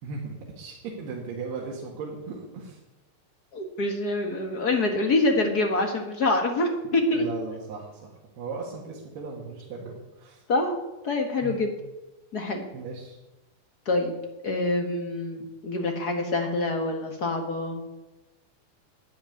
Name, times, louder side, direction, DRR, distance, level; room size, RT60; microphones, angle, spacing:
voice 1, 0.0-2.8 7.1-10.4 11.4-11.6 12.7-13.2, right 4 dB, 80° right, -3 dB, 4.2 m, -37 dB
voice 2, 3.5-7.3 10.5-10.8 11.0-11.7 12.3-12.7 13.8-14.1 14.4-17.8, left 2 dB, 65° left, 3 dB, 0.9 m, -26 dB
13.0 x 10.5 x 9.6 m, 1.0 s
omnidirectional pair, 4.6 m